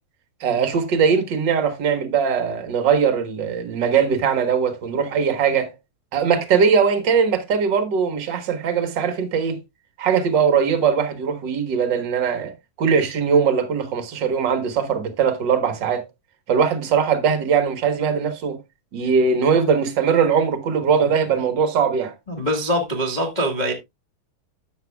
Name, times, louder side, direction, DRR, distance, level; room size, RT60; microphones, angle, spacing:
voice 1, 0.4-5.7 6.1-9.6 10.0-12.5 12.8-16.0 16.5-18.6 18.9-22.1, right 6 dB, 55° right, 1.2 m, -20 dB
voice 2, 22.3-23.7, equal, 90° left, 0.4 m, -23 dB
12.5 x 7.9 x 2.3 m
omnidirectional pair, 4.1 m